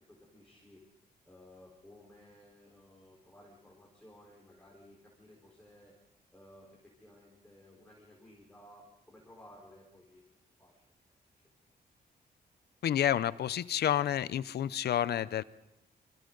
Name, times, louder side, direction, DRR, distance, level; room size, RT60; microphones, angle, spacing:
voice 1, 0.1-0.9 1.2-5.9 6.3-10.2 10.6-10.8 11.3-11.4, left 1 dB, 5° left, -5 dB, 4.4 m, -57 dB
voice 2, 12.8-15.4, left 10 dB, 70° left, 17 dB, 0.6 m, -29 dB
27.0 x 26.0 x 3.9 m, 0.88 s
wide cardioid pair, 150°, 17 cm